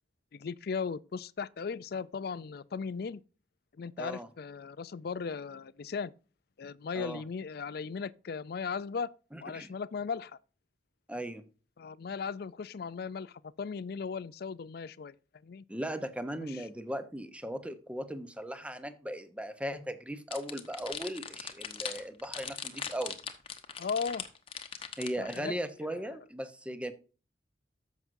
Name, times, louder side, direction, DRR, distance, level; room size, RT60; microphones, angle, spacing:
voice 1, 0.3-3.2 3.8-6.1 6.6-9.1 9.4-10.4 11.8-15.1 15.4-15.6 16.5-16.7 23.8-24.2 25.2-25.6 25.9-26.2, left 5 dB, 60° left, 0.4 m, -37 dB
voice 2, 4.0-4.3 6.9-7.2 9.3-9.7 11.1-11.4 15.7-23.2 25.0-26.9, right 1 dB, 5° right, 0.8 m, -38 dB
sound 1, 20.3-25.4, left 7 dB, 30° left, 1.0 m, -40 dB
13.5 x 6.0 x 2.6 m
head